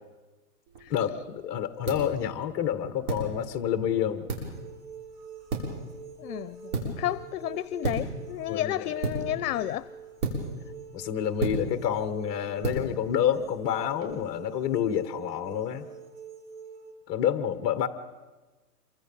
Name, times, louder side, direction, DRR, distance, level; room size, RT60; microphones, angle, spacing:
sound 1, 0.7-14.1, right 2 dB, 65° right, 6.9 m, -36 dB
voice 1, 0.9-4.3 8.5-8.9 10.9-15.9 17.1-17.9, left 9 dB, 25° left, 9 dB, 1.1 m, -28 dB
sound 2, 4.5-16.9, right 6 dB, 40° right, 3.2 m, -46 dB
voice 2, 6.2-9.9, left 13 dB, 65° left, 16 dB, 0.7 m, -32 dB
27.0 x 24.0 x 5.5 m, 1.3 s
hypercardioid pair, 155°, 47 cm